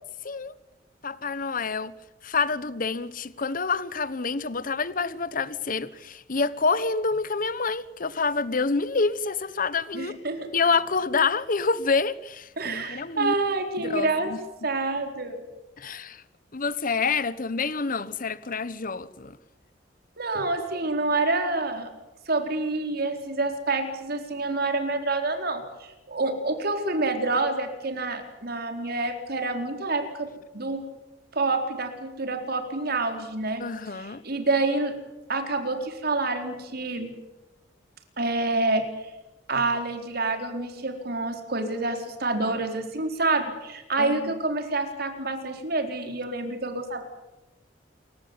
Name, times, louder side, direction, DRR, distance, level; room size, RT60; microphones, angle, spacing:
voice 1, 1.0-1.9 2.2-10.2 10.5-13.3 13.8-14.4 15.8-16.2 16.5-19.4 33.6-34.2 44.0-44.4, left 4 dB, 50° left, 1.1 m, -27 dB
voice 2, 9.9-10.4 12.6-14.3 14.6-15.4 20.2-21.9 22.3-30.3 30.5-30.8 31.3-33.6 33.9-34.9 35.3-37.1 38.2-38.8 39.5-47.0, right 3 dB, 55° right, 4.3 m, -27 dB
28.5 x 16.0 x 9.6 m
head